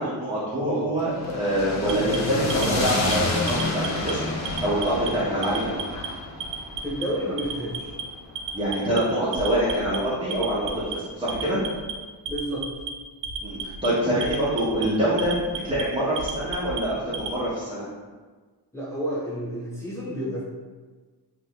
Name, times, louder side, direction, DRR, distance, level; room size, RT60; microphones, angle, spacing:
voice 1, 0.0-4.2 4.6-5.8 8.5-11.6 13.4-17.8, right 1 dB, 15° right, -10 dB, 0.6 m, -25 dB
sound 1, 1.0-9.2, left 2 dB, 40° left, 0.5 m, -30 dB
Alarm, 1.8-3.1 3.5-4.1 4.4-5.1 5.4-6.1 6.4-7.0 7.4-8.0 8.4-9.0 9.3-10.0 10.3-10.9 11.3-11.9 12.3-12.9 13.2-13.9 14.2-14.8 15.2-15.8 16.2-17.3, right 6 dB, 75° right, 0.5 m, -33 dB
voice 2, 6.8-7.9 12.3-12.7 18.7-20.4, equal, 5° left, -9 dB, 1.0 m, -30 dB
2.6 x 2.5 x 3.3 m, 1.4 s
wide cardioid pair, 145°, 44 cm